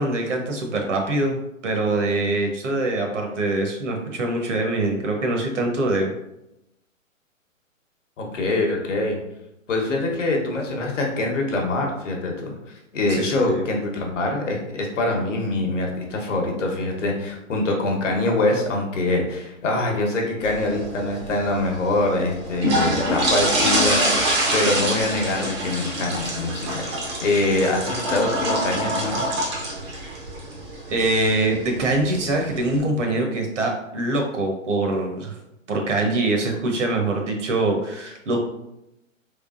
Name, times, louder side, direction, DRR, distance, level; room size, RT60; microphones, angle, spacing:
voice 1, 0.0-6.1 13.1-13.6 30.9-35.3 35.7-38.4, right 2 dB, 60° right, 2 dB, 1.0 m, -24 dB
voice 2, 8.2-9.2 9.7-24.1 24.5-26.9 27.2-29.3, left 2 dB, 65° left, 1 dB, 1.0 m, -24 dB
sound 1, 20.4-32.8, right 1 dB, 20° right, 0.5 m, -26 dB
3.6 x 3.2 x 2.4 m, 0.88 s
hypercardioid pair, 135°, 40 cm